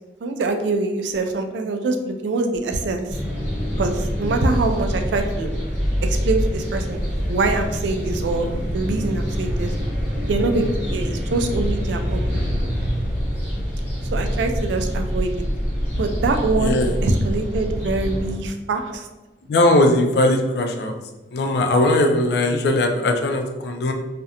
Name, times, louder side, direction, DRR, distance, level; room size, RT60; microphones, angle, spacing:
voice 1, 0.2-3.1 3.8-5.5 6.0-7.0 7.3-9.7 10.3-12.3 14.1-15.3 16.0-16.8 17.0-19.1, right 3 dB, 80° right, 5 dB, 0.3 m, -24 dB
sound 1, 3.1-18.3, equal, 5° right, 1.0 m, -25 dB
voice 2, 16.6-16.9 19.5-20.9 21.3-23.9, left 1 dB, 65° left, 4 dB, 0.3 m, -19 dB
2.4 x 2.0 x 2.7 m, 1.1 s
head